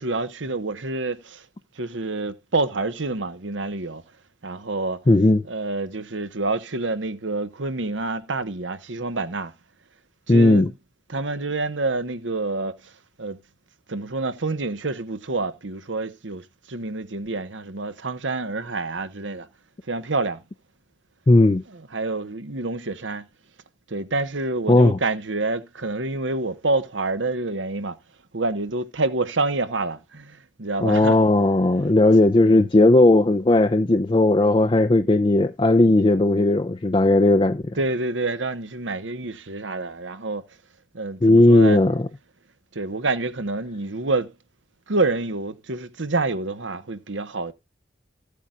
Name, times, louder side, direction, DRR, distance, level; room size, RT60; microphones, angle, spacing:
voice 1, 0.0-1.5 1.8-4.0 4.4-5.0 5.4-9.5 10.3-10.7 11.1-12.9 13.2-13.4 13.9-19.5 19.9-20.4 21.7-23.3 23.9-28.0 28.3-31.2 37.7-40.4 40.9-41.8 42.7-44.3 44.9-47.5, right 3 dB, 80° right, 1.2 m, -27 dB
voice 2, 5.1-5.4 10.3-10.7 21.3-21.6 24.7-25.0 30.8-37.8 41.2-42.1, left 2 dB, 25° left, 0.5 m, -16 dB
14.5 x 8.2 x 2.5 m
head